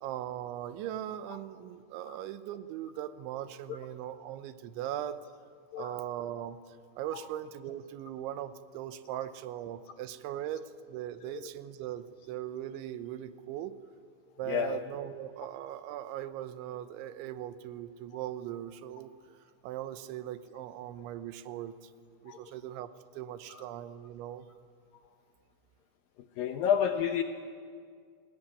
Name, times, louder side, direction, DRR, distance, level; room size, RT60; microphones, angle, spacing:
voice 1, 0.0-5.2 5.8-13.8 14.4-19.1 19.6-21.9 22.2-24.5, right 11 dB, 90° right, 3.3 m, -39 dB
voice 2, 14.5-14.8 22.3-22.4 23.5-23.7 26.2-27.2, left 8 dB, 75° left, 2.2 m, -31 dB
28.0 x 20.0 x 9.9 m
omnidirectional pair, 5.2 m